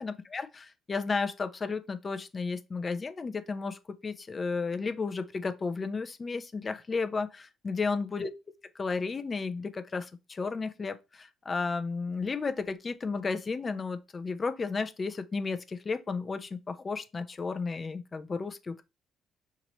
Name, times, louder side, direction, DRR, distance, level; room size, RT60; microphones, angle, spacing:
voice 1, 0.0-8.3 8.8-18.8, left 4 dB, 35° left, 0.7 m, -33 dB
5.9 x 2.9 x 3.0 m
figure-of-eight pair, 45°, 0 cm